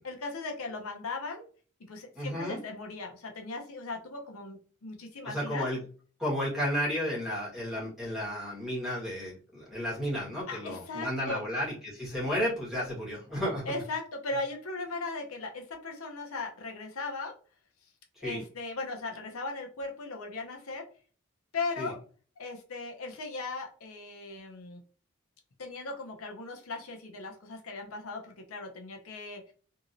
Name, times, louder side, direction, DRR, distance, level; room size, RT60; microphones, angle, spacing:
voice 1, 0.0-1.4 1.9-5.7 10.5-11.4 13.7-17.3 18.2-20.9 21.5-22.0 22.4-24.8 25.6-29.5, left 3 dB, 90° left, 3 dB, 0.7 m, -38 dB
voice 2, 2.1-2.6 5.2-5.8 6.2-13.7 18.2-18.4 21.8-21.9, equal, ahead, -7 dB, 1.4 m, -32 dB
2.9 x 2.8 x 2.5 m, 0.41 s
head